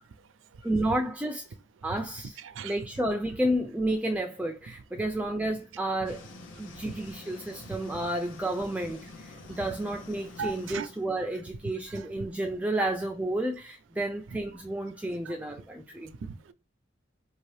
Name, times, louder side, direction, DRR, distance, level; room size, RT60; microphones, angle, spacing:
voice 1, 0.6-1.5 1.8-6.3 6.6-16.1, right 1 dB, 10° right, 0.3 m, -31 dB
voice 2, 2.4-2.7 6.8-6.9 10.4-10.9 11.9-12.1 12.8-12.9 15.3-15.4 16.2-16.5, right 6 dB, 80° right, 0.4 m, -37 dB
sound 1, 6.0-11.0, left 3 dB, 80° left, 0.8 m, -48 dB
5.2 x 2.7 x 3.2 m
head